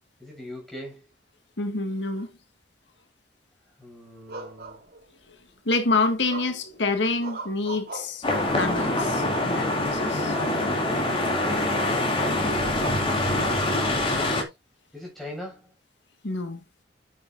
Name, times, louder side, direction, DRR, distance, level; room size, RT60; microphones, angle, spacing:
voice 1, 0.2-1.1 3.6-4.8 14.9-15.7, left 1 dB, ahead, 6.7 m, -42 dB
voice 2, 1.6-2.3 5.6-8.2 8.6-10.4 16.2-16.6, left 3 dB, 85° left, 1.8 m, -27 dB
sound 1, 4.3-5.3 6.3-6.8 7.2-8.6 9.3-9.9 10.3-10.6 10.9-11.1 11.4-12.0 12.6-12.8 13.4-14.2, right 3 dB, 55° right, 3.8 m, -40 dB
sound 2, 8.2-14.4, left 1 dB, 30° left, 2.7 m, -25 dB
10.0 x 9.3 x 2.6 m
head